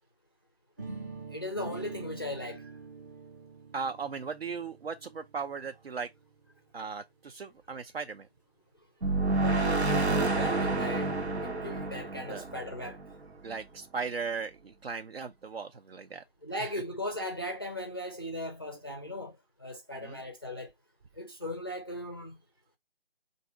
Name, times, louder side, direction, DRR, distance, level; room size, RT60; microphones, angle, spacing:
sound 1, 0.8-6.7, right 4 dB, 20° right, 0.7 m, -45 dB
voice 1, 1.3-2.7 9.4-13.0 16.4-20.7 21.2-22.4, left 1 dB, 25° left, 0.4 m, -38 dB
voice 2, 3.7-6.1 6.7-8.3 12.3-12.4 13.4-16.2 16.6-16.7 20.0-20.2, right 5 dB, 70° right, 0.7 m, -37 dB
sound 2, 9.0-13.6, right 3 dB, 90° right, 1.2 m, -29 dB
4.1 x 2.7 x 4.6 m
figure-of-eight pair, 155°, 32 cm